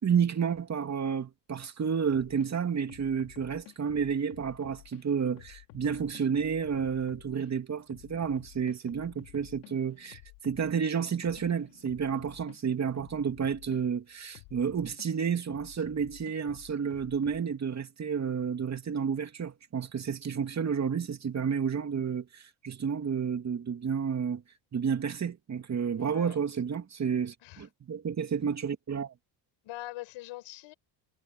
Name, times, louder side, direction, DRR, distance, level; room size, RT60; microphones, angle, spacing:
voice 1, 0.0-24.4 24.7-29.1, right 7 dB, 35° right, 2.6 m, -31 dB
sound 1, 2.1-2.5 2.9-5.0 5.4-7.5 7.9-12.6 13.0-13.8 14.3-15.1 15.5-17.4, left 24 dB, 90° left, 5.4 m, -52 dB
voice 2, 26.0-26.4 27.4-27.7 29.6-30.7, left 17 dB, 70° left, 5.3 m, -43 dB
supercardioid pair, 100°, 49 cm